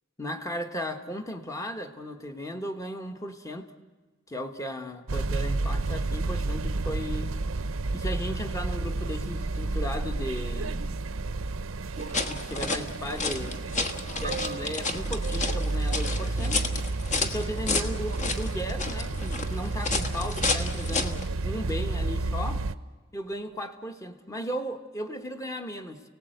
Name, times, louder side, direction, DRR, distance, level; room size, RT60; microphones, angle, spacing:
voice 1, 0.2-3.7 4.3-7.3 7.9-10.8 12.3-13.6 14.2-16.6 17.2-22.6 23.1-26.0, equal, 15° left, 6 dB, 1.3 m, -36 dB
sound 1, 5.1-22.8, right 2 dB, 80° right, 0.7 m, -31 dB
sound 2, 12.0-21.3, left 3 dB, 35° left, 1.4 m, -32 dB
sound 3, 12.0-17.1 18.0-18.2, right 5 dB, 45° right, 0.6 m, -44 dB
29.5 x 18.0 x 7.9 m, 1.4 s
head